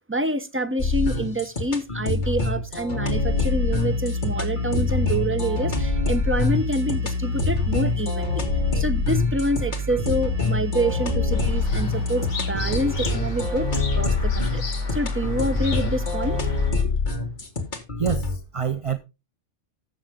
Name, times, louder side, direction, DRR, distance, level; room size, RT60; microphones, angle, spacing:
voice 1, 0.1-8.4 8.7-16.4 16.8-16.9, right 1 dB, 10° right, 0.9 m, -27 dB
sound 1, 0.8-18.4, left 3 dB, 40° left, 1.9 m, -26 dB
sound 2, 3.1-16.8, left 2 dB, 60° right, 1.7 m, -29 dB
sound 3, 11.3-16.7, left 5 dB, 75° left, 1.8 m, -37 dB
voice 2, 18.0-19.0, right 8 dB, 40° right, 0.5 m, -26 dB
14.0 x 6.5 x 3.6 m
omnidirectional pair, 1.2 m